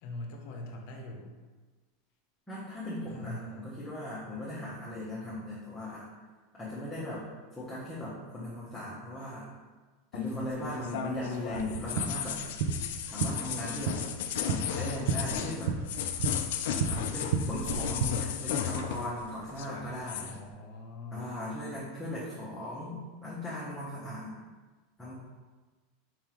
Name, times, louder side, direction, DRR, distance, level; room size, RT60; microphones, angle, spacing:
voice 1, 0.0-1.4 3.1-3.9 10.3-10.7 20.1-21.4, left 2 dB, 55° left, 2 dB, 0.7 m, -43 dB
voice 2, 2.5-6.0 6.6-7.2 7.6-9.5 10.1-12.4 13.1-14.0 14.4-15.7 16.7-20.4 21.1-24.3 25.0-25.1, left 1 dB, 5° left, -10 dB, 0.8 m, -38 dB
sound 1, 10.1-19.2 19.5-20.4, left 9 dB, 70° left, 0.3 m, -35 dB
sound 2, 11.5-18.1, right 6 dB, 65° right, 0.4 m, -33 dB
4.7 x 3.6 x 3.0 m, 1.3 s
supercardioid pair, 165°, 0 cm